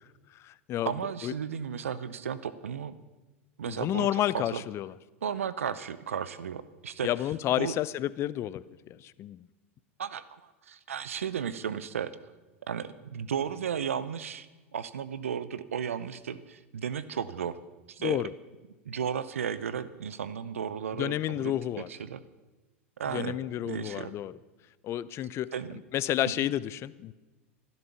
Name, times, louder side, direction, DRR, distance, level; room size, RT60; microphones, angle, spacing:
voice 1, 0.3-0.9 1.2-1.3 3.7-4.9 7.0-9.5 18.0-18.3 20.9-21.9 23.1-24.3 24.8-25.5 25.9-27.1, left 12 dB, 40° left, 19 dB, 0.6 m, -30 dB
voice 2, 0.9-3.0 3.6-4.6 5.2-7.1 7.6-7.7 10.0-12.1 12.7-14.5 14.7-17.6 17.9-18.2 18.8-22.2 23.0-23.3 23.6-24.1 25.5-25.8, right 8 dB, 80° right, 16 dB, 0.8 m, -34 dB
14.5 x 12.0 x 7.0 m, 1.2 s
hypercardioid pair, 95°, 7 cm